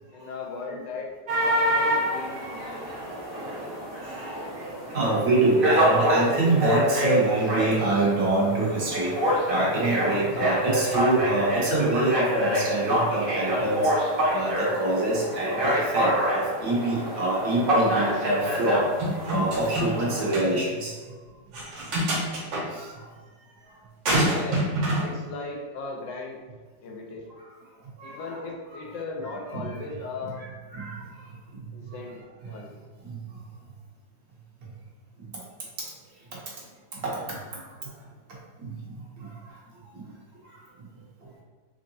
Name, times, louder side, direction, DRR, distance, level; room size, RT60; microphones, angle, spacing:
voice 1, 0.1-1.1 1.4-2.4 3.4-3.7 24.2-24.7 25.0-26.4 26.8-27.2 28.0-30.4 31.7-32.8, left 3 dB, 85° left, 0 dB, 1.4 m, -37 dB
sound 1, 1.3-20.3, equal, 40° right, 0.8 m, -26 dB
voice 2, 4.2-13.9 14.3-18.8 19.3-20.9 22.2-22.4 22.7-22.9 28.0-28.4 28.7-28.8 29.2-29.7 30.4-31.0 33.0-33.2 37.0-37.4 38.6-39.3 39.9-40.1, right 2 dB, 60° right, -4 dB, 1.3 m, -26 dB
sound 2, 19.0-20.0 20.3-20.5 21.5-22.6 24.0-25.1, right 1 dB, 80° right, 1.6 m, -26 dB
3.7 x 3.1 x 2.6 m, 1.5 s
omnidirectional pair, 2.0 m